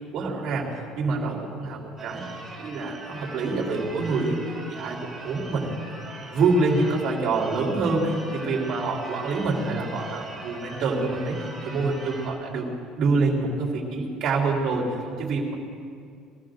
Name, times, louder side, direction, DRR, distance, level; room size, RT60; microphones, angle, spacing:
voice 1, 0.1-4.4 4.7-5.8 6.2-12.7 12.9-15.5, right 3 dB, 50° right, -2 dB, 3.3 m, -26 dB
Church bell / Car / Alarm, 2.0-12.3, right 2 dB, 20° right, 4.0 m, -41 dB
22.5 x 14.5 x 3.9 m, 2.2 s
cardioid pair, 155°, 0 cm